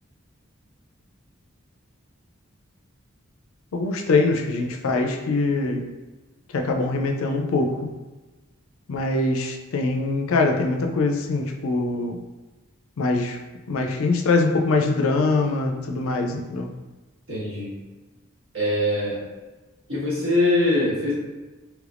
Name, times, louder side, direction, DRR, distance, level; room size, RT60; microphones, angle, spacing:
voice 1, 3.7-5.9 6.5-7.9 8.9-12.2 13.0-13.4 13.7-16.7, left 3 dB, 80° left, 3 dB, 0.4 m, -23 dB
voice 2, 17.3-17.7 18.5-19.2 19.9-21.1, left 1 dB, 70° right, -8 dB, 1.4 m, -22 dB
3.3 x 3.0 x 2.4 m, 1.2 s
head